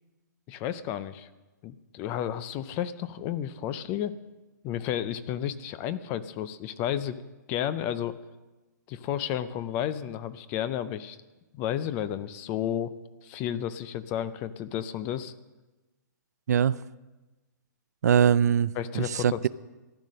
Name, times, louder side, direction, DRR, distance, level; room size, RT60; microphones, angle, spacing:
voice 1, 0.5-1.3 1.6-4.1 4.6-7.2 7.5-8.2 8.9-11.2 11.5-12.9 13.2-15.3 18.8-19.5, left 10 dB, 15° left, 15 dB, 0.4 m, -32 dB
voice 2, 16.5-16.8 18.0-19.5, right 8 dB, 60° right, 18 dB, 0.4 m, -22 dB
14.5 x 10.5 x 6.4 m, 1.2 s
hypercardioid pair, 165°, 10 cm